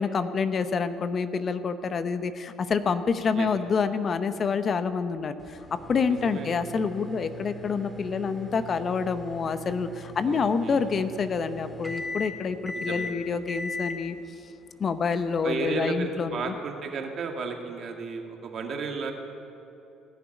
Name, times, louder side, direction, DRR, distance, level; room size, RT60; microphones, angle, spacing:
voice 1, 0.0-14.2 14.8-16.5, left 5 dB, 45° left, 11 dB, 0.9 m, -27 dB
sound 1, 5.4-15.7, left 1 dB, 10° left, 2.1 m, -40 dB
voice 2, 6.2-6.6 10.2-10.8 12.9-13.1 15.4-19.1, right 4 dB, 50° right, 3 dB, 2.3 m, -33 dB
18.0 x 7.0 x 9.7 m, 2.9 s
hypercardioid pair, 70°, 0 cm